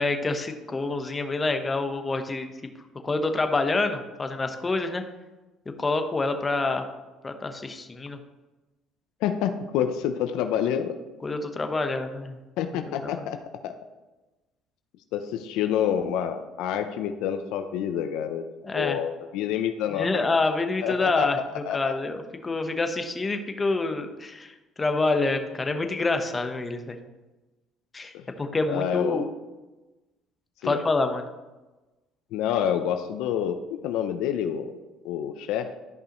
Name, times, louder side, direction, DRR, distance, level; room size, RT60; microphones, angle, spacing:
voice 1, 0.0-2.5 3.0-5.0 5.8-6.8 7.2-8.2 11.2-12.4 13.0-13.1 18.6-19.0 19.9-27.0 27.9-29.3 30.6-31.2, left 3 dB, 25° left, 6 dB, 1.0 m, -27 dB
voice 2, 9.2-11.0 12.6-13.7 15.1-18.4 18.7-20.1 20.8-21.9 28.1-28.3 28.7-29.3 30.6-30.8 32.3-33.6 33.8-34.8 35.0-35.7, left 9 dB, 80° left, 8 dB, 0.5 m, -28 dB
12.5 x 5.4 x 3.0 m, 1.1 s
supercardioid pair, 95°, 0 cm